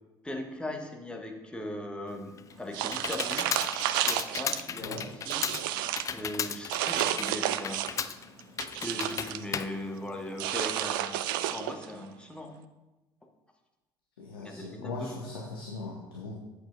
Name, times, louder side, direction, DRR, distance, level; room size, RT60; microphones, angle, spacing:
voice 1, 0.2-3.5 4.0-5.4 6.1-8.0 8.7-11.2 11.5-12.6 14.4-15.2, left 1 dB, 10° left, 3 dB, 1.1 m, -39 dB
Computer keyboard, 2.1-10.7, left 7 dB, 25° left, 0.3 m, -36 dB
sound 1, 2.7-4.6 5.0-6.1 6.7-8.1 8.4-9.4 10.4-11.9, right 12 dB, 60° right, 0.4 m, -31 dB
voice 2, 14.2-16.3, left 3 dB, 75° left, -2 dB, 1.0 m, -39 dB
8.7 x 7.8 x 2.6 m, 1.1 s
figure-of-eight pair, 60°, 12 cm